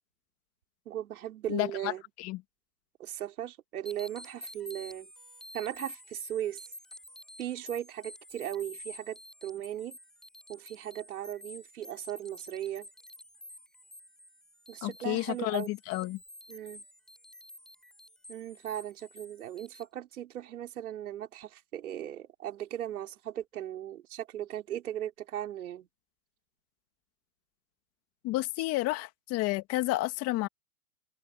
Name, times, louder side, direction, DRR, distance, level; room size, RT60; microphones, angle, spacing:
voice 1, 0.8-2.0 3.0-5.1 5.5-6.6 7.4-10.0 10.5-12.9 14.7-15.7 16.5-16.8 18.3-25.9, right 11 dB, 65° right, 5.3 m, -37 dB
voice 2, 1.5-1.9 2.2-2.4 14.8-16.2 28.2-30.5, left 19 dB, 30° left, 2.2 m, -31 dB
sound 1, 3.9-19.8, equal, ahead, 8.0 m, -50 dB
open air
hypercardioid pair, 130°, 46 cm